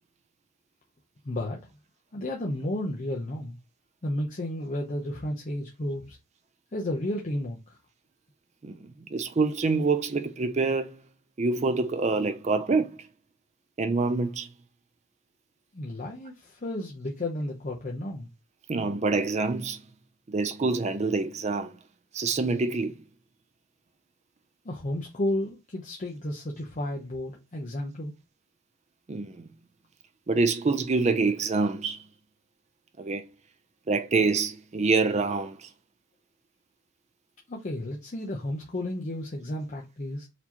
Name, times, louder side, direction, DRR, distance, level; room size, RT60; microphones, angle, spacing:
voice 1, 1.2-1.6 2.1-3.6 4.0-6.2 6.7-7.8 15.7-18.3 24.6-28.1 37.5-40.3, left 1 dB, 35° left, 0.6 m, -32 dB
voice 2, 8.6-11.0 11.4-13.1 13.8-14.5 18.7-19.8 20.3-21.7 22.1-23.0 29.1-29.5 30.3-32.0 33.0-33.2 33.9-35.7, right 3 dB, 30° right, 0.4 m, -26 dB
4.2 x 2.8 x 2.9 m
head